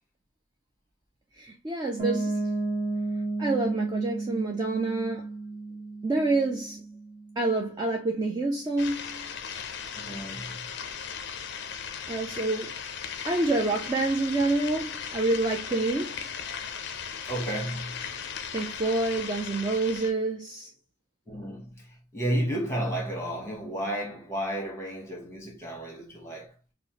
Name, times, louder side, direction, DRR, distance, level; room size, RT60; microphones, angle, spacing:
voice 1, 1.4-2.4 3.4-5.3 6.0-6.8 7.4-9.3 12.1-12.8 13.2-16.2 18.5-20.7, right 2 dB, 20° right, 0.3 m, -27 dB
Piano, 2.0-7.7, right 2 dB, 40° right, 1.3 m, -33 dB
sound 1, 8.8-20.1, left 7 dB, 55° left, 0.4 m, -37 dB
voice 2, 9.9-10.6 17.2-18.0 21.3-21.9 22.1-26.5, right 1 dB, 10° left, 1.1 m, -32 dB
4.5 x 2.0 x 2.8 m
head